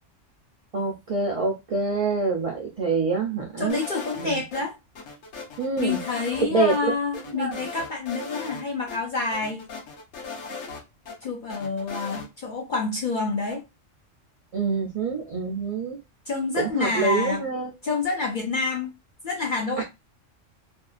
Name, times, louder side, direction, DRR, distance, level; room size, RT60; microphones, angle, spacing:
voice 1, 0.7-3.8 4.2-4.4 5.6-6.0 6.4-6.9 7.4-7.6 14.5-16.0 16.5-17.7 19.8-19.9, right 4 dB, 60° right, 0.3 m, -26 dB
voice 2, 3.6-4.7 5.8-9.7 10.4-10.6 11.2-13.6 16.3-17.4 17.8-18.9 19.2-19.8, left 4 dB, 60° left, 0.5 m, -28 dB
sound 1, 3.7-4.6 5.0-6.4 6.7-6.8 7.1-8.6 8.9-9.0 9.3-11.2 11.5-12.3, left 4 dB, 90° left, 1.1 m, -37 dB
2.6 x 2.4 x 2.3 m
omnidirectional pair, 1.3 m